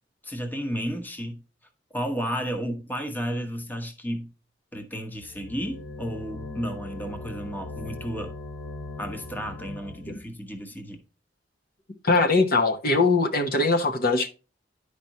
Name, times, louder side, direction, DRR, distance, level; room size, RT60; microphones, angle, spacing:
voice 1, 0.2-1.4 1.9-4.3 4.7-8.3 9.0-11.0, equal, 10° left, 1.0 m, -32 dB
sound 1, 5.1-10.3, left 2 dB, 85° left, 3.2 m, -39 dB
voice 2, 12.0-14.3, left 3 dB, 55° left, 1.1 m, -21 dB
10.5 x 5.0 x 2.9 m
head